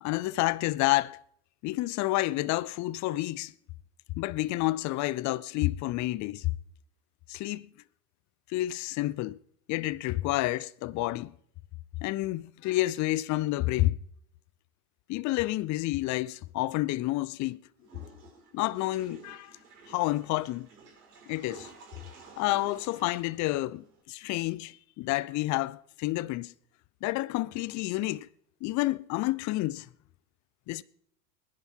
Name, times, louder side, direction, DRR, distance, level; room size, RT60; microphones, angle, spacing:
voice 1, 0.0-1.2 1.6-3.5 4.2-6.5 7.3-7.7 8.5-9.4 9.7-11.3 12.0-14.0 15.1-17.6 18.5-19.6 19.9-20.7 21.3-21.7 22.4-26.5 27.0-28.3 28.6-29.9 30.7-30.8, left 18 dB, 40° left, 0.6 m, -29 dB
Water / Toilet flush, 17.8-24.0, right 4 dB, 85° right, 5.2 m, -52 dB
20.0 x 11.0 x 4.5 m
hypercardioid pair, 85°, 46 cm